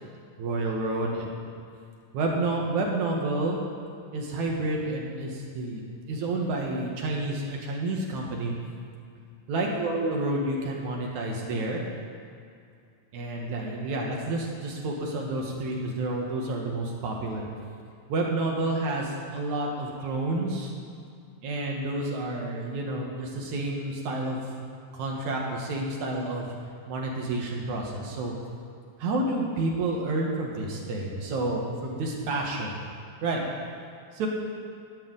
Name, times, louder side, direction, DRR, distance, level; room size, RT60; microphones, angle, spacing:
voice 1, 0.4-1.3 2.1-3.6 4.1-5.8 6.1-8.5 9.5-11.8 13.1-17.5 18.1-20.7 21.4-24.4 24.9-26.5 26.9-28.3 29.0-32.7 33.2-33.4 34.1-34.3, right 2 dB, 70° right, -1 dB, 2.9 m, -29 dB
12.0 x 5.9 x 8.8 m, 2.4 s
omnidirectional pair, 3.5 m